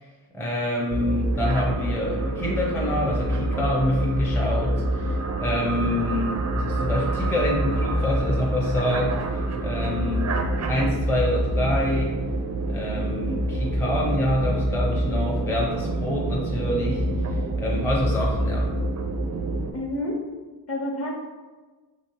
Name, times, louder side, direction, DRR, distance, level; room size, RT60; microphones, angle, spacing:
voice 1, 0.3-12.2 12.7-18.7, left 1 dB, 5° left, -3 dB, 0.6 m, -27 dB
sound 1, 0.9-19.7, right 1 dB, 40° right, 0.4 m, -26 dB
voice 2, 19.7-20.2 20.7-21.2, left 1 dB, 30° left, 0 dB, 0.8 m, -29 dB
3.0 x 2.9 x 3.0 m, 1.3 s
cardioid pair, 65°, 45 cm